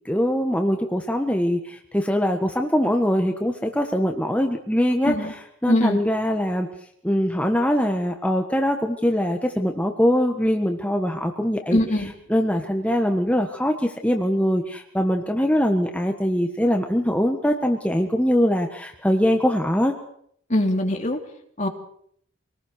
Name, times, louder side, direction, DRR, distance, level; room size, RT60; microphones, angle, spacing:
voice 1, 0.0-6.7 7.0-19.9, equal, 5° left, 3 dB, 1.4 m, -22 dB
voice 2, 5.7-6.0 11.7-12.1 20.5-21.2 21.6-21.7, left 1 dB, 35° left, 3 dB, 3.1 m, -22 dB
26.0 x 19.5 x 6.6 m, 0.65 s
head